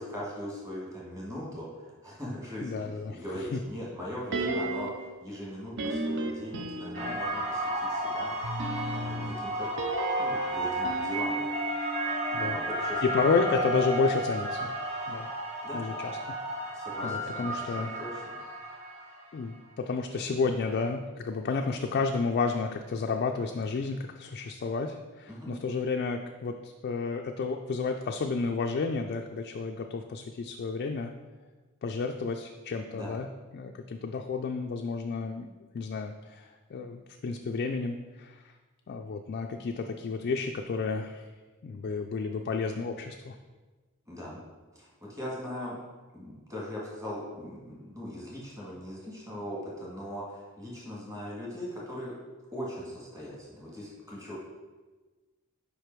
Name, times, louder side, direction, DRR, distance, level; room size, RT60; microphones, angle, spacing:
voice 1, 0.0-8.3 8.9-9.7 10.2-11.4 12.3-13.0 13.3-13.4 15.6-15.8 16.7-18.2 25.3-25.5 32.9-33.2 44.1-44.4 44.7-45.8 46.1-52.1 52.5-54.4, equal, 15° right, -5 dB, 1.6 m, -40 dB
voice 2, 2.6-3.2 3.5-3.6 12.3-12.6 13.0-14.7 15.1-15.3 15.7-16.2 17.0-17.9 19.3-31.1 31.8-33.3 33.5-35.5 35.7-38.5 38.9-41.2 41.6-43.4, left 4 dB, 45° left, 3 dB, 0.3 m, -31 dB
sound 1, 4.3-5.1 5.8-7.4 8.4-12.6 12.9-13.0, right 2 dB, 60° right, 0.5 m, -35 dB
sound 2, 6.9-19.2, right 1 dB, 35° right, 1.7 m, -32 dB
5.1 x 4.9 x 4.5 m, 1.3 s
head